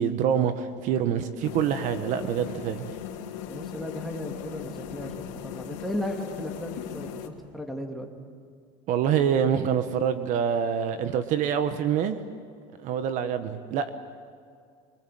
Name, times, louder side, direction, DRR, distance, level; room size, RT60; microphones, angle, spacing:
voice 1, 0.0-2.9 8.9-12.2 12.8-13.9, right 8 dB, 55° right, 10 dB, 1.3 m, -26 dB
sound 1, 1.4-7.3, left 8 dB, 85° left, 2.8 m, -38 dB
voice 2, 3.5-5.1 5.4-8.1, left 1 dB, ahead, 1 dB, 2.7 m, -35 dB
25.5 x 24.5 x 7.8 m, 2.3 s
cardioid pair, 135°, 16 cm